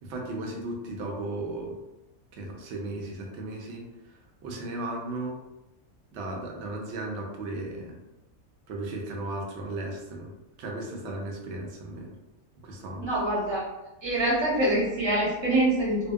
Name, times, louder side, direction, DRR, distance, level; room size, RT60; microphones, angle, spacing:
voice 1, 0.0-1.8 2.3-5.4 6.1-8.0 8.7-10.3 10.6-12.1 12.6-13.1, right 2 dB, 65° right, 0 dB, 0.8 m, -35 dB
voice 2, 13.0-13.6 14.0-16.1, right 1 dB, 25° right, -7 dB, 0.7 m, -25 dB
2.7 x 2.0 x 2.3 m, 0.99 s
omnidirectional pair, 1.5 m